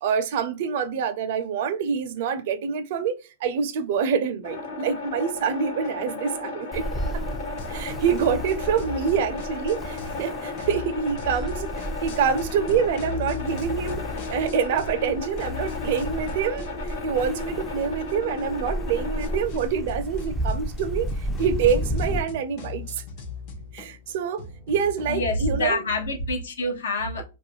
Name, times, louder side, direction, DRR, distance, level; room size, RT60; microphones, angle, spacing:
voice 1, 0.0-6.8 7.7-11.7 12.0-14.0 14.3-23.0 23.7-25.9, right 7 dB, 60° right, 0.4 m, -26 dB
sound 1, 4.4-19.4, left 3 dB, 70° left, 1.2 m, -35 dB
Ocean, 6.7-22.2, equal, 10° left, 0.3 m, -33 dB
sound 2, 7.6-10.2 10.5-15.1 15.4-25.6, left 6 dB, 45° left, 0.7 m, -40 dB
voice 2, 25.1-27.2, left 1 dB, 85° left, 0.7 m, -26 dB
2.4 x 2.1 x 2.8 m
hypercardioid pair, 135°, 0 cm